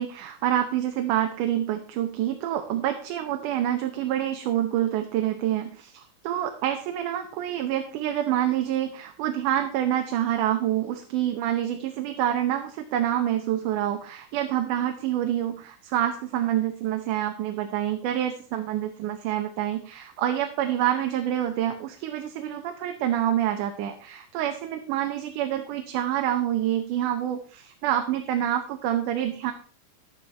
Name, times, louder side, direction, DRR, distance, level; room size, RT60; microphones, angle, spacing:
voice 1, 0.0-29.5, right 11 dB, 85° right, 6 dB, 2.4 m, -27 dB
11.0 x 8.7 x 4.2 m, 0.43 s
omnidirectional pair, 3.6 m